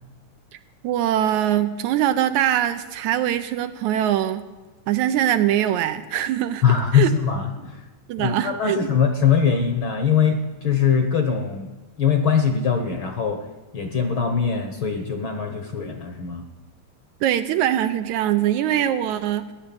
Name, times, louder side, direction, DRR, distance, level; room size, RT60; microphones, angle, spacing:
voice 1, 0.8-4.5 4.9-6.6 6.9-7.1 8.1-8.9 17.2-19.5, right 11 dB, 75° right, 10 dB, 2.0 m, -22 dB
voice 2, 6.6-7.8 8.2-11.7 12.0-13.5 13.7-16.4, left 7 dB, 55° left, 6 dB, 1.6 m, -22 dB
15.0 x 11.0 x 8.7 m, 1.2 s
omnidirectional pair, 3.6 m